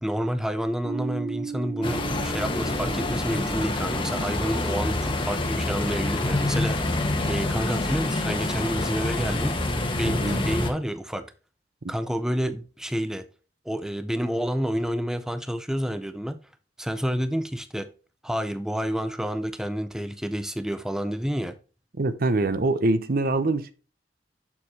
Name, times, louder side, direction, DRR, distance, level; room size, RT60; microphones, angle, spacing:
voice 1, 0.0-6.9 7.3-9.6 10.0-11.2 11.9-13.3 13.7-16.4 16.8-17.9 18.2-21.6, equal, 5° right, 0.5 m, -29 dB
sound 1, 0.8-7.6, right 6 dB, 75° right, 2.7 m, -39 dB
sound 2, 1.8-10.7, left 2 dB, 30° left, 1.1 m, -27 dB
voice 2, 10.1-10.4 22.0-23.7, right 2 dB, 55° right, 0.7 m, -24 dB
7.4 x 6.4 x 2.8 m
head